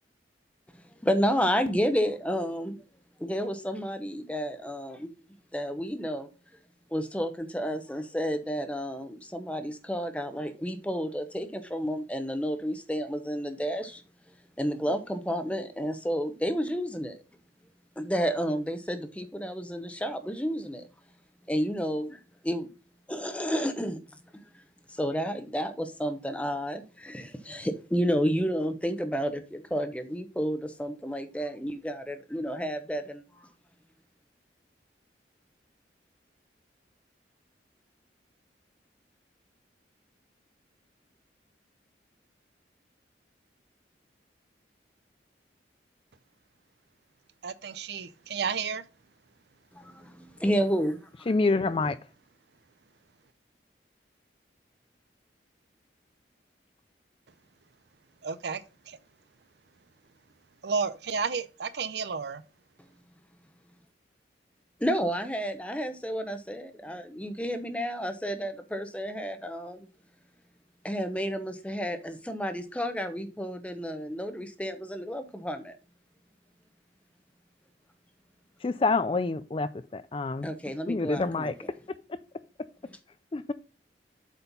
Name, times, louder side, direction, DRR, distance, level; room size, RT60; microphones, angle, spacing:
voice 1, 1.0-2.8 3.2-5.1 5.5-6.3 6.9-14.0 14.6-17.2 18.0-20.9 21.5-22.7 23.1-24.0 24.9-33.5 49.7-51.3 64.8-69.9 70.8-75.7 80.4-81.5, equal, 5° left, 0.8 m, -31 dB
voice 2, 47.4-48.9 58.2-59.0 60.6-62.4, right 5 dB, 70° right, 0.6 m, -32 dB
voice 3, 51.3-52.0 78.6-80.5 80.9-81.5 82.1-82.2 83.3-83.5, left 3 dB, 30° left, 0.4 m, -27 dB
8.0 x 4.4 x 5.3 m
head